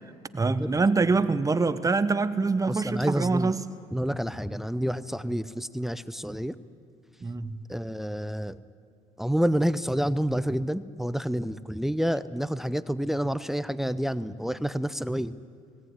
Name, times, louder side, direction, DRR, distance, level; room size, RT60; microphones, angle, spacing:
voice 1, 0.3-3.6 5.2-5.3 7.2-7.6, right 3 dB, 25° right, 13 dB, 1.1 m, -25 dB
voice 2, 2.7-3.5 3.9-6.6 7.7-8.6 9.2-15.4, equal, ahead, 16 dB, 0.6 m, -28 dB
18.5 x 17.5 x 9.7 m, 2.2 s
supercardioid pair, 75°, 14 cm